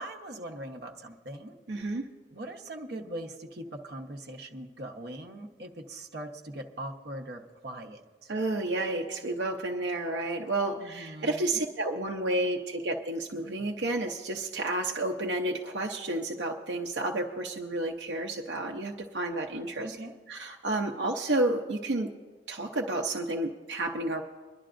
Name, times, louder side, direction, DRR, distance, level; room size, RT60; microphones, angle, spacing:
voice 1, 0.0-1.6 2.3-8.3 10.8-11.6 19.8-20.1, right 1 dB, 65° right, 2 dB, 1.0 m, -41 dB
voice 2, 1.7-2.1 8.3-19.9 20.3-22.1 22.5-24.2, right 2 dB, 85° right, 2 dB, 0.6 m, -31 dB
24.5 x 11.0 x 2.5 m, 1.4 s
head